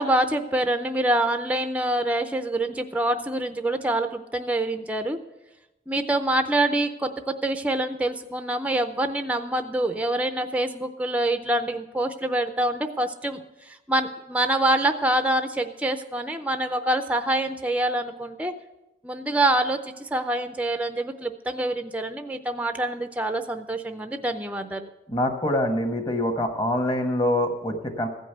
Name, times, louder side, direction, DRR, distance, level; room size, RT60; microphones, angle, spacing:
voice 1, 0.0-5.2 5.9-18.5 19.0-24.9, right 1 dB, 10° right, 7 dB, 0.5 m, -26 dB
voice 2, 25.1-28.1, left 1 dB, 25° left, 4 dB, 1.3 m, -25 dB
15.0 x 5.3 x 7.9 m, 0.97 s
head